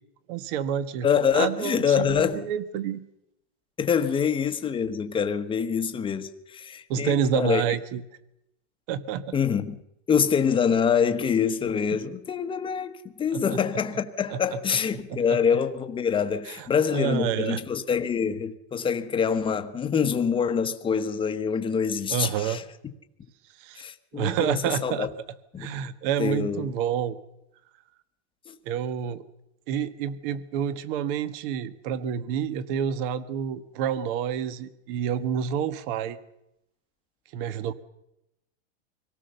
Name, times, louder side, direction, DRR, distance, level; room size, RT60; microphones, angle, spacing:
voice 1, 0.3-1.1 1.3-3.0 6.9-8.0 8.9-9.4 13.3-13.4 14.3-14.6 15.1-15.4 16.5-16.6 16.9-17.6 22.1-22.6 23.6-23.8 24.1-25.1 25.6-27.2 28.6-29.2 29.7-36.2 37.3-37.7, right 8 dB, 50° right, 1.5 m, -28 dB
voice 2, 1.0-2.4 3.8-7.6 9.3-9.8 10.1-22.6 23.8-25.1 25.5-25.8 26.2-26.7 28.5-28.6, left 7 dB, 15° left, 1.2 m, -25 dB
25.0 x 18.0 x 6.8 m
supercardioid pair, 150°, 35 cm